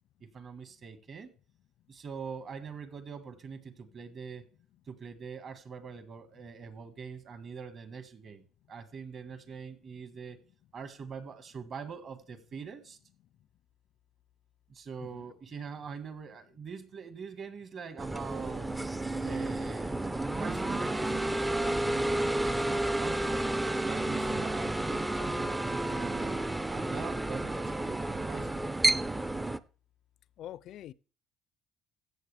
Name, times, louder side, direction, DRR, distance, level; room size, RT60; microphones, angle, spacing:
voice 1, 0.2-1.3 1.9-4.4 4.9-10.4 10.7-13.0 14.7-18.7 19.2-20.0 20.3-23.4 23.8-28.7, right 6 dB, 40° right, 1.6 m, -43 dB
sound 1, 18.0-29.6, right 2 dB, 10° right, 0.4 m, -31 dB
voice 2, 30.4-30.9, left 12 dB, 60° left, 0.4 m, -44 dB
15.5 x 7.3 x 3.4 m
cardioid pair, 135°, 0 cm